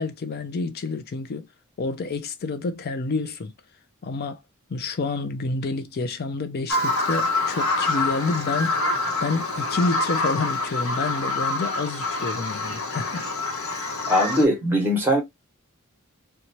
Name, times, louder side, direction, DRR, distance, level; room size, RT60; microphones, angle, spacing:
voice 1, 0.0-1.5 1.8-3.5 4.0-4.4 4.7-13.3, left 3 dB, 45° left, 0.4 m, -29 dB
Bird vocalization bird call bird song, 6.7-14.4, left 2 dB, 65° left, 0.9 m, -26 dB
voice 2, 14.1-15.2, equal, 10° right, 1.1 m, -20 dB
2.7 x 2.2 x 2.9 m
head